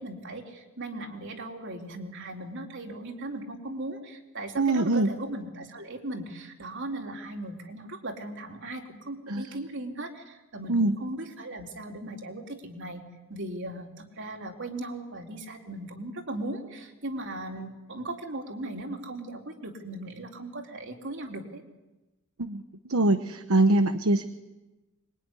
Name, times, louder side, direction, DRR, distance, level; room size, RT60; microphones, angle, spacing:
voice 1, 0.0-21.6, right 1 dB, 60° right, 3 dB, 3.8 m, -38 dB
voice 2, 4.6-5.1 9.3-9.4 10.7-10.9 22.4-22.6 22.9-24.3, right 2 dB, 80° right, 9 dB, 1.1 m, -23 dB
25.5 x 23.0 x 10.0 m, 1.1 s
head